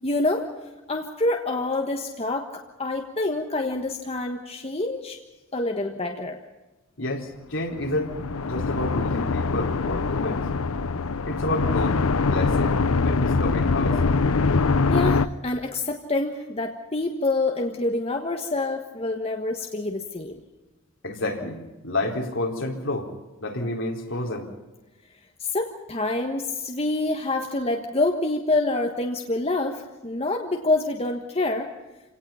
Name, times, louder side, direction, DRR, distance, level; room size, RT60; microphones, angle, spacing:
voice 1, 0.0-0.5 0.9-5.2 5.5-6.4 14.9-20.4 25.4-31.7, left 2 dB, 30° left, 3 dB, 1.4 m, -27 dB
voice 2, 7.0-10.4 11.3-14.2 21.0-23.1 23.4-24.5, left 1 dB, 60° left, 1 dB, 4.0 m, -30 dB
sound 1, 7.7-15.3, left 4 dB, 85° left, 0.7 m, -23 dB
28.0 x 18.0 x 5.7 m, 1.1 s
head